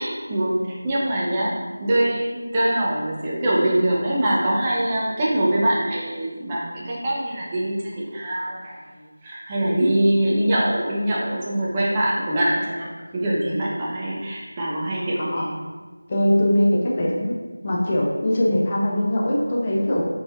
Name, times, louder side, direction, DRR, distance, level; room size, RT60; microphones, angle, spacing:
voice 1, 0.0-8.8 9.2-15.6, right 1 dB, 15° right, -5 dB, 1.0 m, -23 dB
voice 2, 16.1-17.4 17.6-20.0, left 1 dB, 25° left, -3 dB, 1.1 m, -21 dB
8.7 x 4.7 x 3.7 m, 1.4 s
figure-of-eight pair, 170°, 0 cm